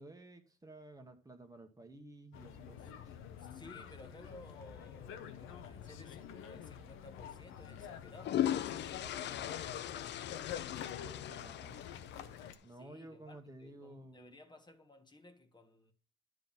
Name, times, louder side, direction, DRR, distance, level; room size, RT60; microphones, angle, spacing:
voice 1, 0.0-3.2 11.0-11.8 12.6-14.3, right 1 dB, 20° right, 1.3 m, -53 dB
sound 1, 2.3-12.6, left 9 dB, 90° left, 0.9 m, -48 dB
voice 2, 3.4-10.5 12.7-15.9, left 2 dB, 20° left, 1.5 m, -57 dB
sound 2, 3.9-11.5, right 5 dB, 75° right, 1.8 m, -67 dB
sound 3, 6.5-6.7 7.9-12.5, left 11 dB, 65° left, 0.5 m, -38 dB
10.5 x 3.9 x 7.3 m
cardioid pair, 90°, 20 cm